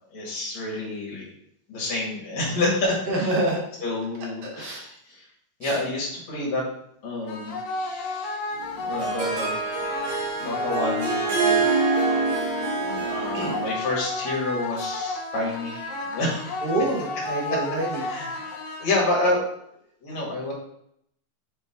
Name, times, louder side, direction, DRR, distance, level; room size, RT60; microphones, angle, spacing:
voice 1, 0.1-1.3 1.7-3.3 3.8-5.2 5.6-6.6 7.0-8.4 8.8-9.6 10.4-12.0 12.8-16.7 17.5-17.6 17.9-18.3 18.8-19.4 20.0-20.5, left 2 dB, 55° left, -4 dB, 3.1 m, -29 dB
voice 2, 3.1-3.6 4.5-4.9 5.6-5.7 10.4-10.6 13.3-13.6 16.6-18.0 18.3-18.4, right 2 dB, 60° right, -2 dB, 1.6 m, -27 dB
sound 1, 7.3-19.3, left 2 dB, 75° left, 1.6 m, -33 dB
Harp, 8.6-13.9, right 4 dB, 90° right, 3.2 m, -26 dB
7.5 x 3.8 x 3.7 m, 0.73 s
omnidirectional pair, 4.0 m